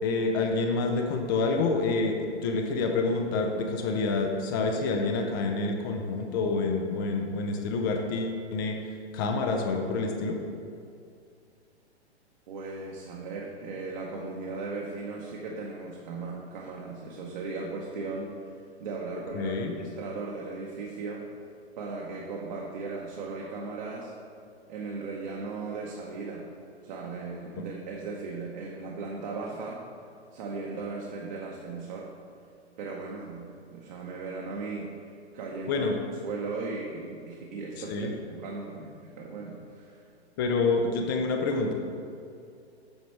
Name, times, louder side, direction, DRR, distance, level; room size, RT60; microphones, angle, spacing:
voice 1, 0.0-8.8 9.1-10.4 19.3-19.7 35.7-35.9 37.8-38.1 40.4-41.7, left 3 dB, 20° left, 3 dB, 0.4 m, -27 dB
voice 2, 12.5-18.3 18.8-21.2 21.7-24.1 24.7-26.5 26.8-29.8 30.3-32.1 32.8-34.9 35.3-35.9 36.2-40.0, right 3 dB, 45° right, -2 dB, 0.9 m, -37 dB
7.9 x 5.0 x 4.6 m, 2.4 s
figure-of-eight pair, 110°, 34 cm